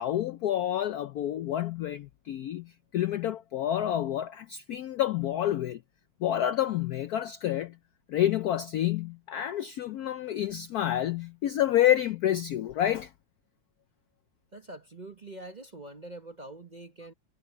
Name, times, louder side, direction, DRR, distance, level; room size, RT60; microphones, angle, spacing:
voice 1, 0.0-5.8 6.2-7.7 8.1-13.1, left 12 dB, 75° left, 0.8 m, -28 dB
voice 2, 14.5-17.1, right 2 dB, 30° right, 0.9 m, -44 dB
omnidirectional pair, 2.2 m